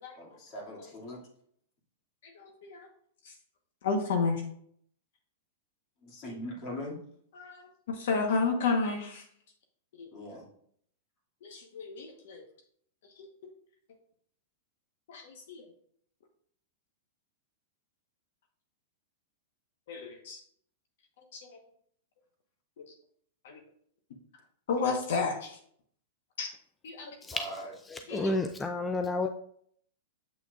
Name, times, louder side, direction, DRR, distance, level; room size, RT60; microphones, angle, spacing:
voice 1, 0.2-1.2 6.0-7.0 10.1-10.5 27.2-27.7 28.1-28.5, left 1 dB, 40° left, -2 dB, 2.3 m, -41 dB
voice 2, 2.2-2.9 3.2-3.3 3.8-4.4 7.4-9.2 10.0-10.1 11.4-12.4 15.1-15.6 19.9-20.4 21.3-21.6 23.4-23.6 24.7-25.6 26.4-26.5 26.8-27.1 28.1-28.3, left 4 dB, 70° left, 4 dB, 1.1 m, -32 dB
voice 3, 27.9-29.3, left 2 dB, 10° left, 5 dB, 0.4 m, -30 dB
7.5 x 5.9 x 2.4 m, 0.64 s
hypercardioid pair, 130°, 0 cm